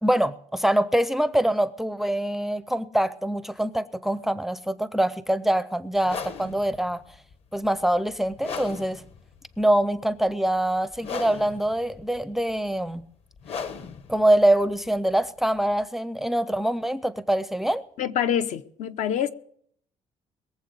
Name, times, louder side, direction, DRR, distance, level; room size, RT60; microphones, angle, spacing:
voice 1, 0.0-7.0 7.5-9.0 9.6-13.1 14.1-17.8, right 1 dB, ahead, 0.5 m, -24 dB
sound 1, 6.0-15.8, left 6 dB, 50° left, 1.1 m, -39 dB
voice 2, 18.0-19.3, left 9 dB, 70° left, 0.8 m, -26 dB
22.0 x 7.4 x 6.7 m
cardioid pair, 160°, 13 cm